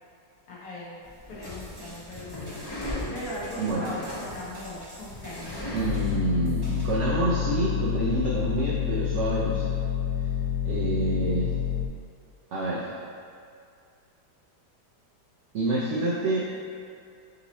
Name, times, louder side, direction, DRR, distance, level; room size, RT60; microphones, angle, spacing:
voice 1, 0.5-1.0 1.3-2.8 3.1-5.9, left 1 dB, 60° left, -6 dB, 1.1 m, -39 dB
sound 1, 1.0-6.1, left 1 dB, 40° left, 0.3 m, -38 dB
sound 2, 1.4-7.0, left 1 dB, 20° right, 0.6 m, -46 dB
voice 2, 3.6-4.0 5.7-9.8 10.6-11.5 12.5-12.9 15.5-16.4, right 2 dB, 85° right, -6 dB, 0.6 m, -27 dB
sound 3, 5.8-11.9, left 9 dB, 90° left, 1.4 m, -28 dB
4.0 x 2.8 x 4.0 m, 2.4 s
omnidirectional pair, 1.9 m